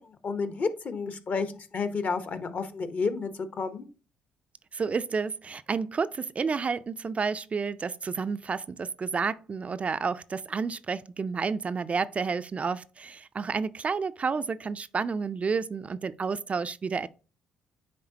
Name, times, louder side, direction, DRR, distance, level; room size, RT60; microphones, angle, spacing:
voice 1, 0.0-3.3 3.6-3.8, left 4 dB, 45° left, 0.9 m, -31 dB
voice 2, 4.7-17.1, right 5 dB, 35° right, 0.4 m, -30 dB
9.4 x 3.5 x 2.8 m
hypercardioid pair, 45°, 4 cm